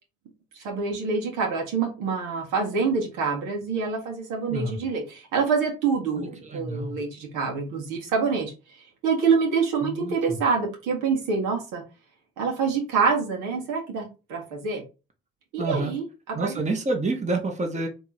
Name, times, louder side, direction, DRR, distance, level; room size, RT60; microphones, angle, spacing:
voice 1, 0.5-8.5 9.0-11.8 12.4-14.8 15.5-16.6, right 5 dB, 70° right, 1 dB, 1.7 m, -26 dB
voice 2, 6.1-7.0 9.8-10.4 15.6-15.9 16.3-17.9, right 2 dB, 20° right, 2 dB, 1.3 m, -28 dB
3.5 x 3.1 x 4.2 m, 0.30 s
hypercardioid pair, 55°, 33 cm